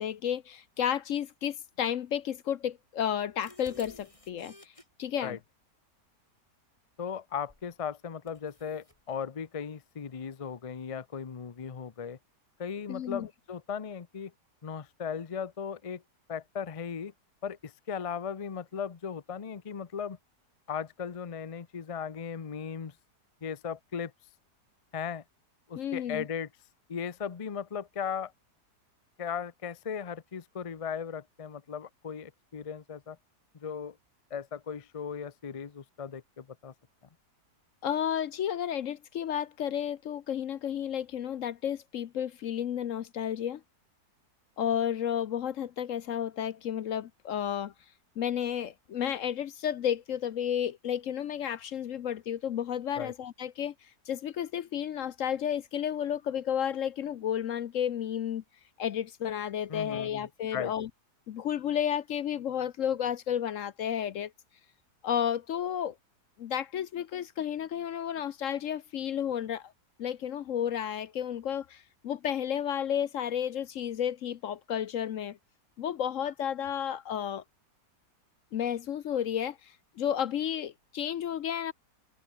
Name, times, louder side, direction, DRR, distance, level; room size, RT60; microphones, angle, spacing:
voice 1, 0.0-4.7 5.0-5.4 12.9-13.3 25.8-26.2 37.8-43.6 44.6-47.7 48.2-53.7 54.1-58.4 58.8-60.9 61.3-64.3 65.0-65.9 66.4-69.7 70.0-75.4 75.8-77.4 78.5-81.7, left 9 dB, 60° left, 0.9 m, -32 dB
sound 1, 3.0-4.9 7.5-7.7 8.3-9.0, left 1 dB, 20° left, 3.9 m, -54 dB
voice 2, 7.0-12.2 12.6-14.3 14.6-16.0 16.3-17.1 17.4-20.2 20.7-22.9 23.4-24.1 24.9-25.2 25.7-26.5 26.9-28.3 29.2-33.2 33.5-34.0 34.3-36.7 53.0-53.1 59.7-60.7, left 7 dB, 40° left, 0.4 m, -37 dB
omnidirectional pair, 1.8 m